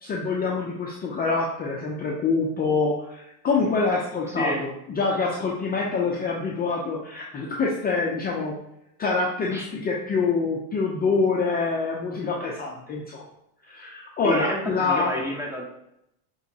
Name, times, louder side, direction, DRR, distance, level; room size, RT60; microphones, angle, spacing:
voice 1, 0.0-8.6 9.0-13.3 13.7-15.2, left 4 dB, 20° left, -2 dB, 0.5 m, -26 dB
voice 2, 4.3-4.7 9.5-9.6 14.2-15.6, left 1 dB, 5° right, -1 dB, 0.8 m, -29 dB
5.5 x 3.1 x 2.7 m, 0.83 s
supercardioid pair, 110°, 43 cm